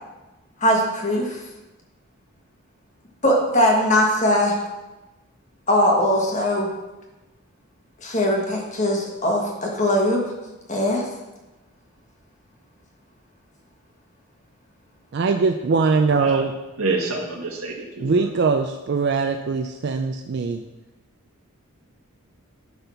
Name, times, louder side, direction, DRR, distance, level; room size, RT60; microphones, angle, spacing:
voice 1, 0.6-1.4 3.2-4.5 5.7-6.7 8.0-10.2 10.7-11.0, left 1 dB, 35° left, 0 dB, 1.5 m, -20 dB
voice 2, 15.1-16.5 18.0-20.6, right 4 dB, 50° right, 6 dB, 0.4 m, -21 dB
voice 3, 16.8-18.3, right 3 dB, 80° right, 0 dB, 1.6 m, -27 dB
10.5 x 4.0 x 5.7 m, 1.1 s
head